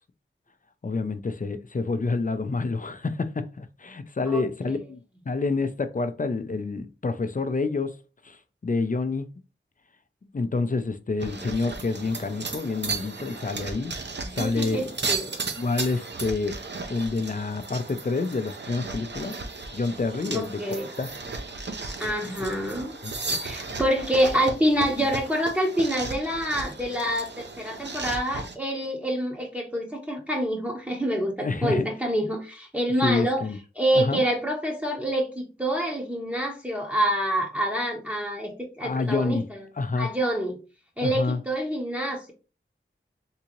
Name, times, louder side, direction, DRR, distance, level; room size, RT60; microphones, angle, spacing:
voice 1, 0.8-7.9 8.2-9.3 10.3-13.9 14.3-14.8 15.6-16.6 16.9-19.3 19.7-20.6 21.0-21.1 23.0-23.4 31.4-31.8 33.0-33.6 33.9-34.2 38.8-39.4 39.8-40.1 41.0-41.4, left 3 dB, 40° left, 0.5 m, -28 dB
voice 2, 4.3-4.7 14.4-15.4 20.3-20.9 22.0-23.0 23.4-33.4 33.7-39.6 40.0-40.6 41.0-42.3, equal, 5° right, 0.8 m, -27 dB
sound 1, 11.2-28.5, right 3 dB, 55° right, 0.6 m, -35 dB
3.6 x 2.7 x 2.9 m
wide cardioid pair, 60°, 21 cm